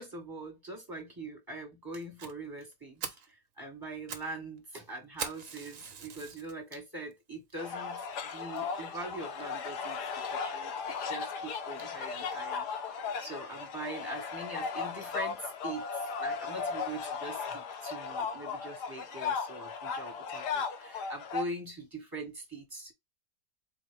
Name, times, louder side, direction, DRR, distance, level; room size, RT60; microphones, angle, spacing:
voice 1, 0.0-8.0 8.3-10.0 10.3-10.7 11.0-22.9, right 2 dB, 15° right, 1.9 m, -42 dB
Fire, 2.2-2.3 2.7-2.8 3.0-3.3 3.8-4.3 4.6-4.7 5.2-6.5 7.1-7.2 7.8-7.9 8.1-8.2 8.6-8.7, right 6 dB, 60° right, 1.2 m, -41 dB
sound 1, 7.6-21.4, left 5 dB, 85° left, 1.4 m, -36 dB
4.4 x 2.8 x 3.4 m
omnidirectional pair, 1.7 m